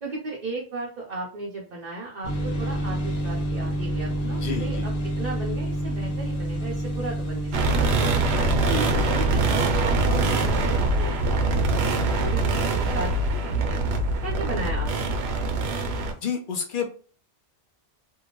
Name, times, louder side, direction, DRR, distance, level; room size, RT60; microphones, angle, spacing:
voice 1, 0.0-7.9 8.3-13.8 14.2-15.6, right 3 dB, 50° right, -3 dB, 0.6 m, -35 dB
sound 1, 2.2-14.7, right 1 dB, 40° left, 1.0 m, -31 dB
voice 2, 4.4-4.9 16.2-16.9, left 6 dB, 60° left, 4 dB, 0.6 m, -29 dB
sound 2, 7.5-16.1, right 2 dB, 75° right, 0.9 m, -23 dB
2.7 x 2.1 x 2.9 m, 0.40 s
omnidirectional pair, 1.1 m